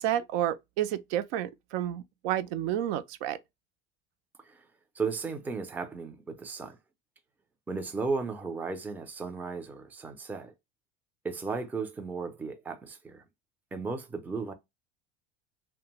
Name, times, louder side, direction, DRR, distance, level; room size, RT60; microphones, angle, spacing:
voice 1, 0.0-3.4, right 11 dB, 75° right, 0.5 m, -30 dB
voice 2, 4.9-6.8 7.7-10.5 11.2-13.2 13.7-14.5, right 4 dB, 5° right, 0.4 m, -35 dB
2.5 x 2.2 x 2.8 m
supercardioid pair, 115°, 31 cm